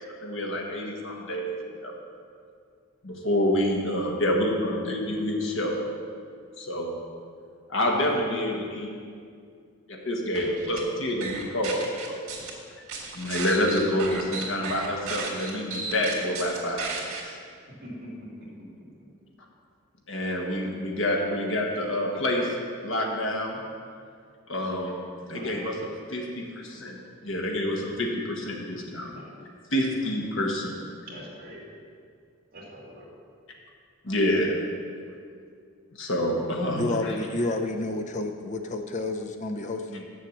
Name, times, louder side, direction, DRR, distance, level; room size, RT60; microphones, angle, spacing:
voice 1, 0.2-1.9 3.0-5.8 6.6-6.9 7.7-8.9 9.9-12.2 13.1-17.4 20.1-22.5 22.8-23.6 24.5-24.9 25.3-25.7 26.1-27.0 27.2-29.1 29.7-30.8 34.0-34.6 36.0-37.2, left 1 dB, 65° left, 0 dB, 1.4 m, -27 dB
sound 1, 10.3-10.8 11.2-12.5 12.9-17.2, right 4 dB, 80° right, 2.0 m, -34 dB
voice 2, 25.3-25.8 29.1-29.3 31.1-31.7 32.5-33.1, equal, 45° right, -5 dB, 2.4 m, -43 dB
voice 3, 36.8-40.1, left 2 dB, 35° left, 5 dB, 0.6 m, -30 dB
7.5 x 7.0 x 7.2 m, 2.2 s
head